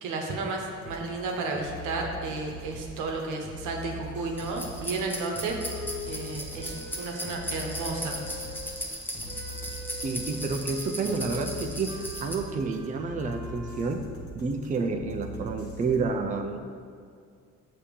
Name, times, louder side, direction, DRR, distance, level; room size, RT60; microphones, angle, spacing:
voice 1, 0.0-5.7 6.1-8.2, right 3 dB, 90° right, 1 dB, 0.9 m, -33 dB
sound 1, 0.8-16.0, right 1 dB, 50° left, 1.3 m, -42 dB
sound 2, 4.4-12.3, equal, 5° left, 0.8 m, -37 dB
Wind instrument woodwind instrument, 5.6-8.9 9.3-13.9, left 3 dB, 35° left, 1.4 m, -42 dB
voice 2, 10.0-14.0 14.3-16.6, right 4 dB, 25° right, 5 dB, 0.4 m, -30 dB
6.9 x 2.9 x 5.1 m, 2.2 s
cardioid pair, 90°, 30 cm